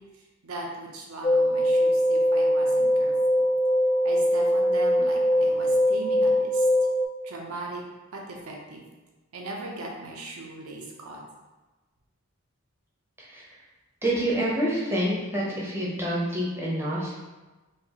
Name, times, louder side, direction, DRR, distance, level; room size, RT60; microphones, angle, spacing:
voice 1, 0.4-3.4 4.0-6.7 7.2-7.8 8.1-8.8 9.3-11.2, right 2 dB, 75° right, 0 dB, 0.7 m, -39 dB
sound 1, 1.2-7.1, equal, 25° left, 0.3 m, -22 dB
voice 2, 13.2-13.6 14.0-17.2, right 1 dB, 10° right, -6 dB, 0.6 m, -27 dB
4.5 x 2.4 x 2.8 m, 1.2 s
head